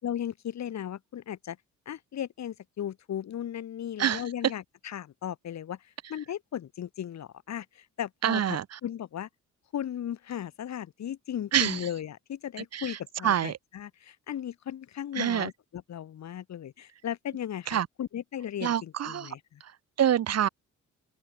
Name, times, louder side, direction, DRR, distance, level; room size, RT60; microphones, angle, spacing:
voice 1, 0.0-1.6 1.9-5.8 6.1-9.3 9.7-19.6, left 10 dB, 65° left, 3.5 m, -36 dB
voice 2, 8.2-8.8 11.5-11.9 12.6-13.6 15.1-15.5 17.7-17.9 18.6-19.3 19.6-20.5, right 10 dB, 55° right, 1.5 m, -27 dB
open air
cardioid pair, 90°, 30 cm